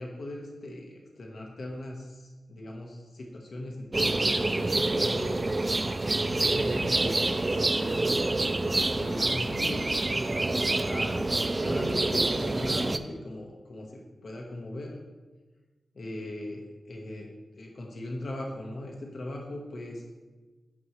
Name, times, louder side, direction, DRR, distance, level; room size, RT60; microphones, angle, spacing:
voice 1, 0.0-2.2 2.5-5.4 6.1-8.1 9.0-9.9 10.9-15.0 15.9-17.3 17.6-20.0, left 1 dB, 65° left, 0 dB, 1.2 m, -39 dB
sound 1, 3.9-13.0, right 2 dB, 30° right, 0.4 m, -27 dB
9.6 x 5.4 x 3.2 m, 1.3 s
cardioid pair, 75°, 0 cm